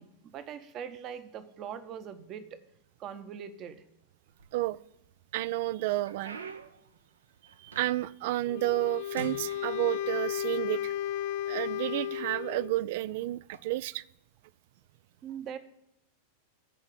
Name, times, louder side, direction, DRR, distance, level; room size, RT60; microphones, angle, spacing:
voice 1, 0.0-2.6 3.0-3.8 15.2-15.6, right 8 dB, 35° right, 0.9 m, -41 dB
sound 1, 4.3-5.0 5.5-8.3 8.6-8.9 9.2-10.4 11.2-11.3 12.0-12.2 13.4-13.6, right 4 dB, 75° right, 0.8 m, -46 dB
voice 2, 5.3-6.4 7.6-10.9 11.5-14.0, right 17 dB, 50° right, 0.3 m, -31 dB
Wind instrument woodwind instrument, 8.5-12.8, left 12 dB, 50° left, 0.3 m, -34 dB
13.5 x 4.8 x 7.9 m
figure-of-eight pair, 90°, 0 cm